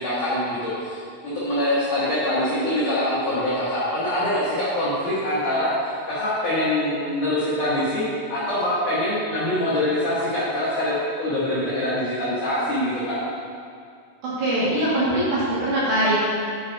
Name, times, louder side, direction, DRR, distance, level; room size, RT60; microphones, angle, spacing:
voice 1, 0.0-5.7 6.1-13.2, left 1 dB, 80° left, -10 dB, 1.8 m, -24 dB
voice 2, 14.2-16.2, right 1 dB, 60° right, -10 dB, 2.8 m, -22 dB
9.5 x 8.7 x 2.7 m, 2.2 s
omnidirectional pair, 6.0 m